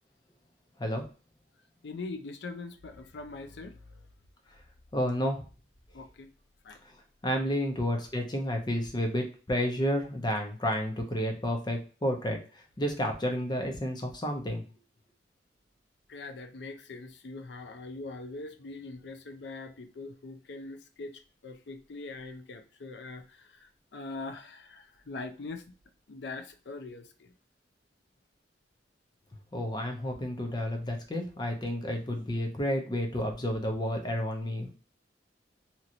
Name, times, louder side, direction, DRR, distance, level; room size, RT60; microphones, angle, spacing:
voice 1, 1.8-4.0 5.9-6.3 6.6-6.8 16.1-25.7 26.1-27.3, left 3 dB, 70° left, 7 dB, 0.5 m, -42 dB
voice 2, 4.9-5.4 6.8-6.9 7.2-14.6 29.5-34.7, equal, 25° left, 3 dB, 0.7 m, -31 dB
2.9 x 2.8 x 2.5 m, 0.36 s
head